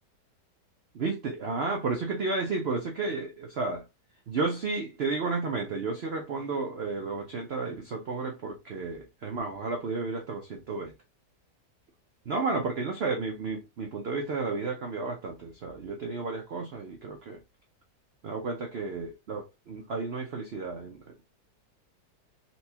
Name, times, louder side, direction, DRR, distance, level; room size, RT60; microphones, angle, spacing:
voice 1, 0.9-3.8 4.3-10.9 12.3-17.4 18.2-21.0, right 3 dB, 85° right, 0.5 m, -32 dB
4.1 x 2.2 x 2.7 m
omnidirectional pair, 1.9 m